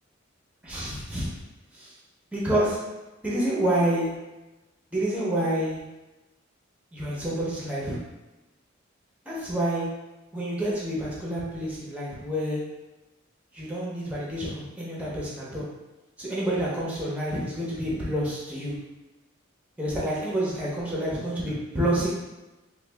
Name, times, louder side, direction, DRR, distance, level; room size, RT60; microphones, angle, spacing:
voice 1, 0.6-1.3 1.7-1.9 2.3-2.8 3.2-4.1 4.9-5.8 6.9-8.0 9.3-9.9 10.3-12.6 13.5-15.7 16.2-18.7 19.8-22.1, right 1 dB, 5° right, -6 dB, 0.8 m, -28 dB
3.1 x 2.3 x 3.3 m, 1.1 s
head